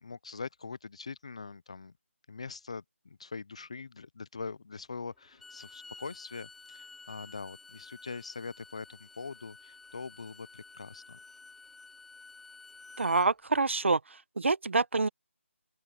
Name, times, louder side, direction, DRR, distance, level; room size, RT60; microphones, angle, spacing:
voice 1, 0.0-1.9 2.3-11.2, left 4 dB, 25° left, 0.3 m, -43 dB
Bowed string instrument, 5.2-13.3, left 3 dB, ahead, 2.5 m, -52 dB
voice 2, 13.0-15.1, right 3 dB, 60° right, 1.1 m, -27 dB
open air
figure-of-eight pair, 170°, 7 cm